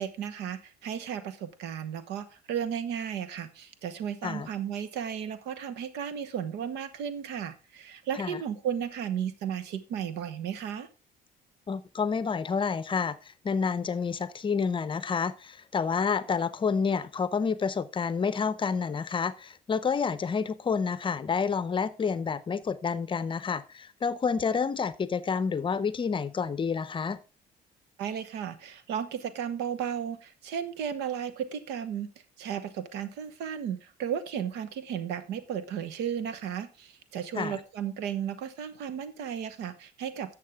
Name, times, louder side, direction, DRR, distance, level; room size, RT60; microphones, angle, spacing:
voice 1, 0.0-10.9 28.0-32.1 32.4-40.4, right 8 dB, 85° right, 1.2 m, -34 dB
voice 2, 11.7-13.2 13.4-27.2 37.3-37.6, left 5 dB, 30° left, 0.6 m, -29 dB
11.0 x 7.3 x 3.5 m
cardioid pair, 110°, 17 cm